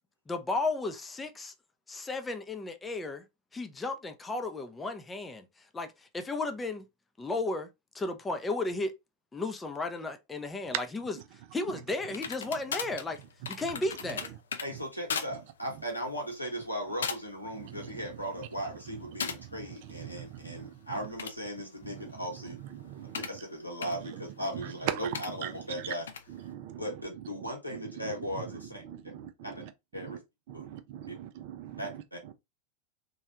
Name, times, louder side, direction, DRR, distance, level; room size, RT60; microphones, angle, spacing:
voice 1, 0.3-1.5 1.9-3.2 3.5-5.5 5.7-5.9 6.1-6.8 7.2-7.7 7.9-8.9 9.3-11.2 11.5-13.2 13.5-14.3, left 2 dB, 15° left, 0.5 m, -34 dB
sound 1, 12.1-14.7 15.1-15.3 15.7-15.9 16.6-16.7 17.0-17.4 17.8-18.3 19.2-19.4 21.0-23.4 23.8-23.9 25.1-25.3 26.1-26.2, left 6 dB, 65° left, 0.4 m, -38 dB
voice 2, 14.6-22.6 23.2-26.1 26.8-28.8 29.4-29.7 29.9-30.2 30.5-30.7 31.1-31.2 31.8-32.3, equal, 90° left, 1.0 m, -38 dB
voice 3, 20.0-20.7 22.8-23.2 24.9-25.0 26.5-26.8 28.9-29.3 30.0-30.2 30.6-31.8, right 10 dB, 50° right, 0.4 m, -39 dB
3.1 x 2.3 x 2.8 m
figure-of-eight pair, 90°, 0 cm